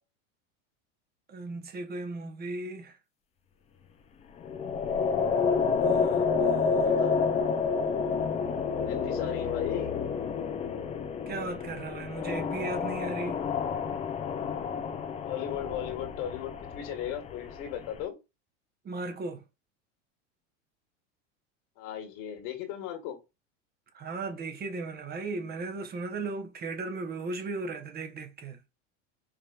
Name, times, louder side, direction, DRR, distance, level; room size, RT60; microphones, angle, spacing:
voice 1, 1.3-3.0 5.8-7.0 11.3-13.5 18.8-19.5 23.9-28.6, right 3 dB, 25° right, 0.8 m, -36 dB
sound 1, 4.4-18.0, left 5 dB, 20° left, 0.4 m, -29 dB
voice 2, 6.8-7.4 8.8-10.0 15.3-18.1 21.8-23.2, left 10 dB, 60° left, 1.5 m, -36 dB
4.9 x 3.0 x 2.3 m
supercardioid pair, 110°, 38 cm